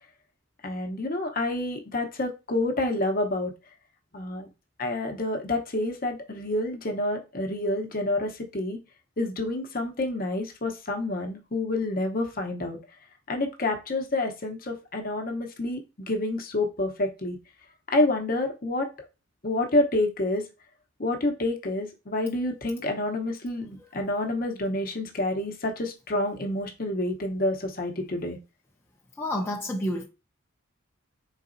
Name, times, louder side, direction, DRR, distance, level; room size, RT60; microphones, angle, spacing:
voice 1, 0.6-3.5 4.1-4.5 4.8-8.8 9.2-12.8 13.3-17.4 17.9-18.9 19.4-20.4 21.0-28.4, left 2 dB, 45° left, 0.8 m, -28 dB
voice 2, 29.2-30.0, left 1 dB, 10° left, 0.5 m, -29 dB
4.0 x 3.8 x 2.6 m
head